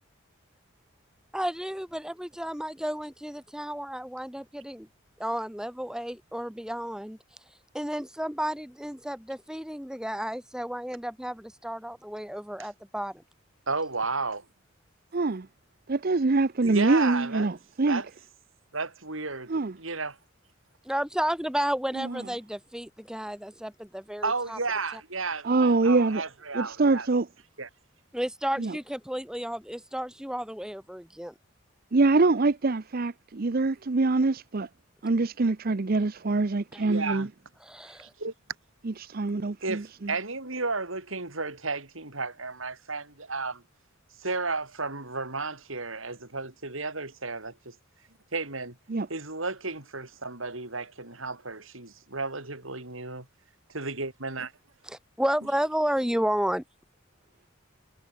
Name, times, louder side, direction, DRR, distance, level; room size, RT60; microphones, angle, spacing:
voice 1, 1.3-4.9 5.2-7.2 7.7-13.1 20.8-23.7 24.1-24.6 28.1-31.3 36.7-36.8 37.6-38.1 54.9-56.6, equal, 5° right, 1.8 m, -32 dB
voice 2, 13.7-14.4 16.6-17.5 17.9-18.1 18.7-20.2 24.2-27.1 27.6-27.7 36.8-37.3 38.0-38.3 39.6-43.6 44.2-47.7 48.3-48.8 49.1-53.3 53.7-54.5, right 3 dB, 75° right, 5.3 m, -33 dB
voice 3, 15.1-15.5 15.9-18.0 19.5-19.7 22.0-22.2 25.4-26.2 26.5-27.3 28.6-28.8 31.9-34.7 35.0-37.3 38.8-40.1 48.9-49.1, right 3 dB, 45° right, 0.6 m, -24 dB
head